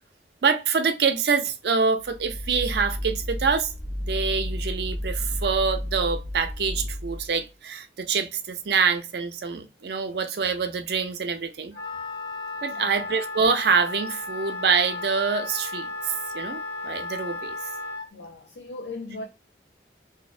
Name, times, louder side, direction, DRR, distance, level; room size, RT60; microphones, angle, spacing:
voice 1, 0.4-3.7 4.0-11.7 12.6-17.6, right 5 dB, 65° right, 0.4 m, -25 dB
sound 1, 2.0-7.4, equal, 5° right, 0.3 m, -32 dB
Wind instrument woodwind instrument, 11.7-18.1, left 3 dB, 70° left, 0.9 m, -34 dB
voice 2, 12.7-13.1 18.1-19.2, left 2 dB, 90° left, 0.5 m, -38 dB
2.7 x 2.0 x 2.3 m
head